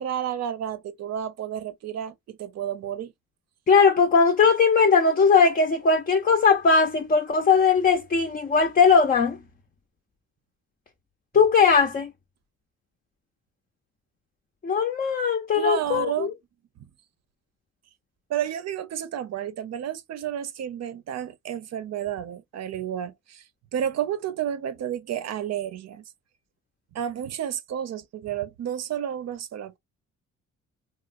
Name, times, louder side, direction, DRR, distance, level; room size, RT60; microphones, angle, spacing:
voice 1, 0.0-3.1 15.6-16.3 18.3-23.4 23.7-26.0 26.9-29.8, right 9 dB, 60° right, 0.7 m, -31 dB
voice 2, 3.7-9.4 11.3-12.1 14.6-16.3, left 5 dB, 30° left, 0.5 m, -19 dB
3.1 x 2.1 x 2.4 m
cardioid pair, 90°, 30 cm